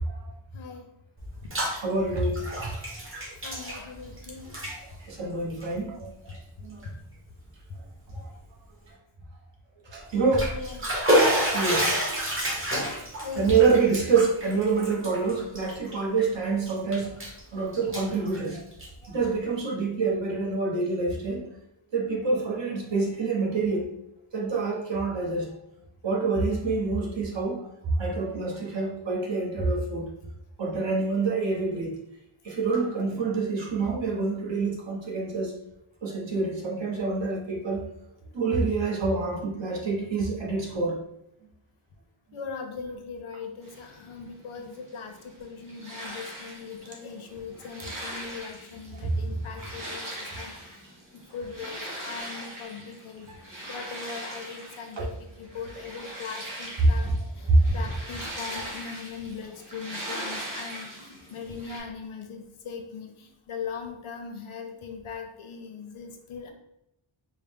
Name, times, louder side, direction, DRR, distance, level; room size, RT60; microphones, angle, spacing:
voice 1, 0.5-0.8 3.4-4.5 10.5-10.9 13.2-13.9 17.6-17.8 42.3-45.1 45.4-50.8 51.1-53.3 53.7-57.1 57.4-66.5, left 5 dB, 75° left, 4 dB, 0.7 m, -40 dB
Bathtub (filling or washing), 1.2-1.8 2.1-4.2 4.4-4.7 5.5-5.6 6.3-6.4 6.8-6.9 10.1-16.2 16.6-17.4 17.7-19.1, equal, 25° right, 0.9 m, -28 dB
voice 2, 1.8-2.6 5.1-6.1 6.6-6.8 8.2-8.3 9.9-10.5 11.5-12.0 12.8-12.9 13.4-17.2 17.5-18.6 19.1-21.4 21.9-23.9 24.3-25.5 26.0-30.1 30.6-31.9 32.4-35.5 36.0-37.9 38.3-41.0 49.0-49.1 55.0-55.1 57.0-57.1 57.5-57.7, right 4 dB, 60° right, -2 dB, 1.0 m, -26 dB
sound 1, 43.6-61.8, right 1 dB, 40° right, 1.4 m, -40 dB
4.7 x 2.1 x 3.5 m, 0.82 s
wide cardioid pair, 125°, 50 cm